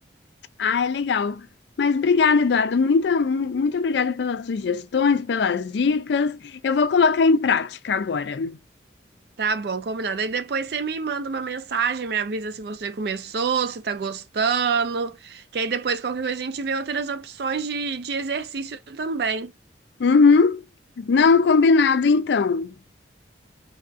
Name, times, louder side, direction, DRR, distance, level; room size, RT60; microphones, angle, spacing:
voice 1, 0.6-1.5 1.8-8.6 20.0-20.6 21.0-22.7, left 4 dB, 70° left, 0.4 m, -20 dB
voice 2, 9.4-19.5, right 5 dB, 60° right, 0.4 m, -27 dB
3.4 x 2.4 x 2.5 m
head